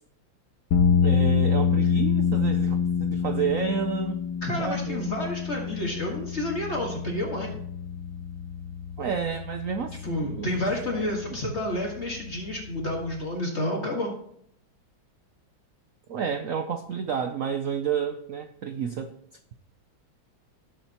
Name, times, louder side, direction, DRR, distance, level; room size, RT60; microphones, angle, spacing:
sound 1, 0.7-13.2, left 6 dB, 75° left, 1.8 m, -27 dB
voice 1, 1.0-4.3 4.6-5.0 9.0-10.5 10.9-11.1 16.1-19.2, right 7 dB, 85° right, 8 dB, 0.7 m, -30 dB
voice 2, 4.4-7.6 10.0-14.1, left 1 dB, 35° left, 0 dB, 1.9 m, -30 dB
18.5 x 7.6 x 2.9 m, 0.70 s
omnidirectional pair, 2.2 m